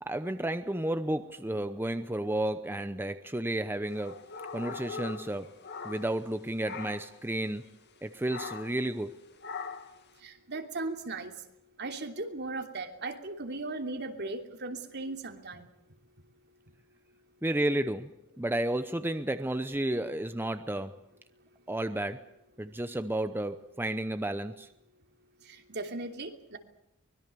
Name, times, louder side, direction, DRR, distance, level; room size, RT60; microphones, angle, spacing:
voice 1, 0.0-4.3 4.5-5.6 5.8-7.7 8.0-9.2 17.4-21.0 21.7-22.3 22.6-24.7, right 1 dB, 10° right, 10 dB, 0.8 m, -32 dB
sound 1, 3.9-6.3 6.6-7.2 8.3-8.8 9.4-10.0, left 5 dB, 55° left, 2.2 m, -41 dB
voice 2, 10.2-11.3 11.8-15.7 25.7-26.6, right 2 dB, 55° right, 4 dB, 3.0 m, -37 dB
24.5 x 21.5 x 7.0 m, 0.87 s
head